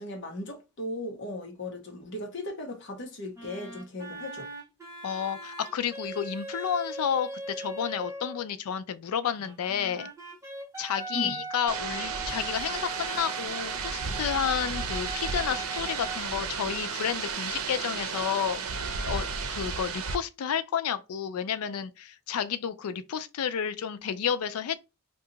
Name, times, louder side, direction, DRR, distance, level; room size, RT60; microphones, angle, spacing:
voice 1, 0.0-4.5 11.1-11.4, left 1 dB, 55° left, 0.8 m, -37 dB
sound 1, 3.3-8.5 9.4-18.4 18.7-19.7, right 2 dB, 15° right, 0.9 m, -40 dB
voice 2, 5.0-10.1 10.8-24.8, left 8 dB, 85° left, 0.4 m, -31 dB
sound 2, 11.7-20.2, right 5 dB, 80° right, 0.6 m, -33 dB
2.8 x 2.3 x 3.8 m
head